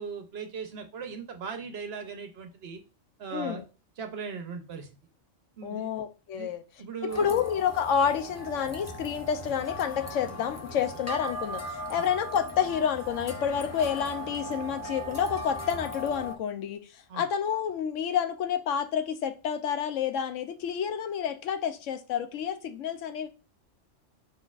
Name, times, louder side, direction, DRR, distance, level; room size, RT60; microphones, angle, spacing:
voice 1, 0.0-2.8 3.2-3.6 4.0-4.9 5.6-5.9 6.4-6.5 6.8-7.4 17.1-17.2, right 5 dB, 60° right, 0.8 m, -38 dB
voice 2, 3.3-3.6 5.6-6.6 7.2-23.3, left 8 dB, 80° left, 0.9 m, -29 dB
sound 1, 7.1-16.4, equal, 25° left, 0.3 m, -38 dB
4.7 x 4.1 x 2.4 m
omnidirectional pair, 1.3 m